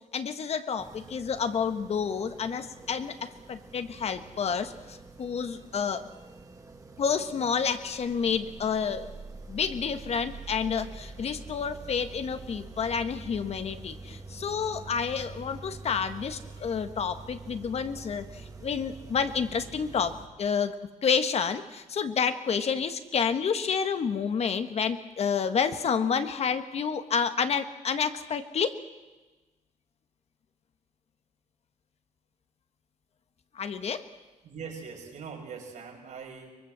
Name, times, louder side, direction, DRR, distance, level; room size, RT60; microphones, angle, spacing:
voice 1, 0.1-6.0 7.0-9.1 9.5-20.8 21.0-28.8 33.5-34.1, left 6 dB, 55° left, 9 dB, 1.5 m, -29 dB
sound 1, 0.8-20.3, right 4 dB, 25° right, 2.0 m, -46 dB
voice 2, 34.4-36.5, right 6 dB, 75° right, 1 dB, 6.0 m, -41 dB
23.5 x 22.0 x 7.6 m, 1.2 s
cardioid pair, 130°, 13 cm